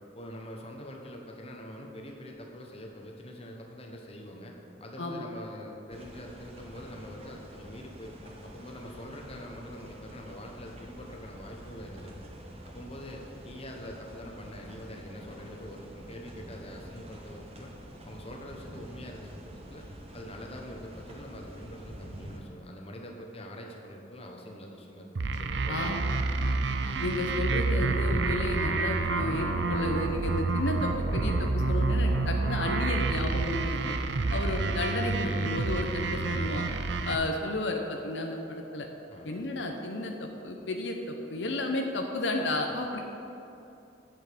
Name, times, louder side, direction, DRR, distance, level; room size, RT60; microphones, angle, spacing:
voice 1, 0.1-12.3 12.6-17.7 18.0-19.3 19.7-19.8 20.1-26.1 39.1-39.4, left 1 dB, 35° left, 1 dB, 1.1 m, -44 dB
sound 1, 5.9-22.4, right 1 dB, 35° right, 1.2 m, -47 dB
sound 2, 25.2-37.2, right 3 dB, 70° right, 0.6 m, -28 dB
voice 2, 27.0-34.0 34.3-36.6 37.0-38.9 39.2-43.0, left 2 dB, 75° left, 3 dB, 0.8 m, -32 dB
9.0 x 8.0 x 5.1 m, 2.8 s
head